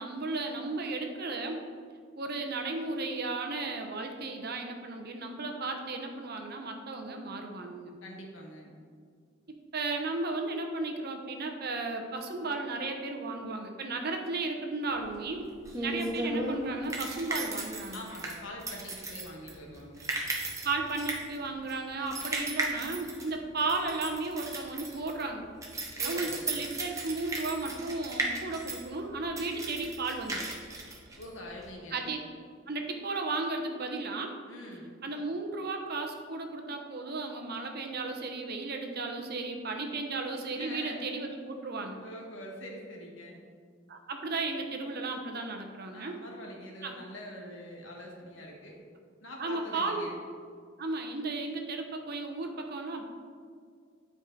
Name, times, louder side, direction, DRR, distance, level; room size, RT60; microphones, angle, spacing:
voice 1, 0.0-1.6 2.2-8.0 9.7-15.4 15.8-18.0 20.6-25.5 26.0-30.4 31.9-32.2 32.7-34.3 35.0-42.0 43.9-46.2 46.8-47.0 49.4-50.1 50.8-53.1, right 3 dB, 50° right, 3 dB, 0.9 m, -34 dB
voice 2, 8.0-8.8 17.9-20.1 26.0-26.5 31.2-32.0 34.5-34.9 40.6-41.0 41.8-43.4 45.9-48.8 49.2-50.2, left 1 dB, 75° left, -1 dB, 1.6 m, -44 dB
sound 1, 15.0-31.7, right 2 dB, 15° right, 1.0 m, -36 dB
10.0 x 4.9 x 4.0 m, 2.1 s
head